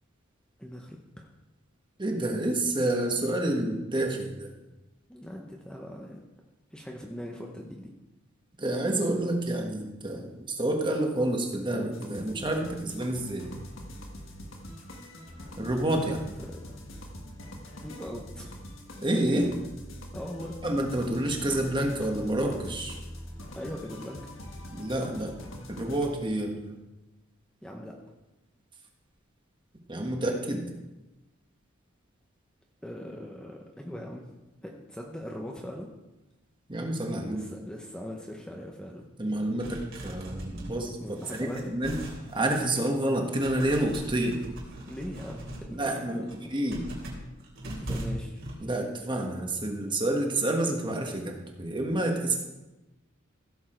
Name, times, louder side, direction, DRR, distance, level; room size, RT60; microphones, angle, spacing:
voice 1, 0.6-1.3 5.1-6.2 6.7-7.9 15.9-16.8 17.8-18.5 20.1-20.5 23.5-24.2 27.6-27.9 32.8-34.2 34.6-35.9 37.2-39.0 41.0-41.7 44.9-46.5 47.6-48.4, equal, 5° left, 0 dB, 0.9 m, -40 dB
voice 2, 2.0-4.5 8.6-13.5 15.6-16.2 19.0-19.5 20.6-23.0 24.7-25.3 25.7-26.8 29.9-30.6 36.7-37.4 39.2-41.9 42.3-44.4 45.7-46.2 46.5-46.8 48.6-52.4, right 1 dB, 25° right, 2 dB, 1.5 m, -28 dB
sound 1, 11.9-26.1, left 1 dB, 70° left, 1.6 m, -44 dB
sound 2, 39.6-43.0 43.3-45.7 46.1-48.5, right 1 dB, 65° right, 3.5 m, -40 dB
15.5 x 7.4 x 4.5 m, 1.0 s
head